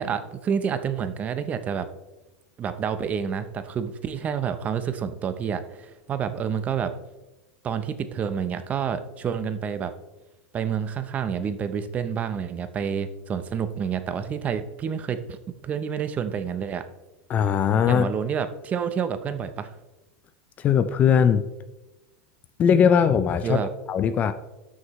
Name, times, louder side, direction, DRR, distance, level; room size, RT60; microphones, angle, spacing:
voice 1, 0.0-1.9 2.6-6.9 7.6-9.9 10.5-16.8 17.9-19.7 23.4-23.7, right 7 dB, 25° right, 11 dB, 0.6 m, -28 dB
voice 2, 17.3-18.1 20.6-21.4 22.6-23.6 23.9-24.3, left 7 dB, 25° left, 12 dB, 0.4 m, -19 dB
12.5 x 6.4 x 3.1 m, 1.0 s
supercardioid pair, 155°, 6 cm